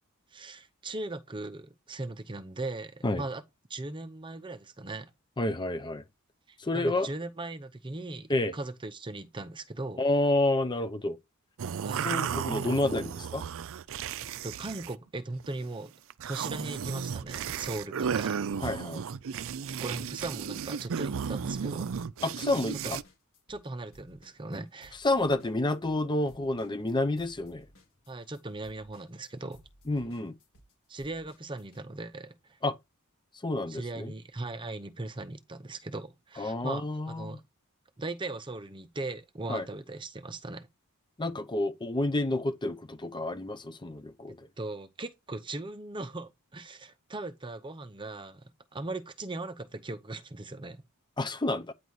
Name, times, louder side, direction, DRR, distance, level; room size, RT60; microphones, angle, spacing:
voice 1, 0.3-3.4 3.7-5.1 6.5-10.0 11.8-12.1 14.4-15.9 16.2-18.4 19.8-21.9 22.8-22.9 23.5-25.0 28.1-29.6 30.9-32.3 33.7-37.4 38.0-40.7 44.6-50.8, right 2 dB, 20° right, 0.7 m, -39 dB
voice 2, 5.4-6.0 6.6-7.1 8.3-8.5 10.0-11.2 12.0-13.4 18.6-19.0 22.2-23.0 25.0-27.7 29.9-30.3 32.6-32.8 33.4-34.1 36.4-37.4 39.5-39.6 41.2-44.5 51.2-51.7, left 2 dB, 20° left, 0.6 m, -29 dB
sound 1, 11.6-15.0 15.3-15.6 16.1-23.0, right 7 dB, 65° right, 0.5 m, -34 dB
sound 2, 22.5-23.7 23.9-31.8, equal, 65° left, 3.8 m, -59 dB
9.3 x 4.0 x 4.6 m
head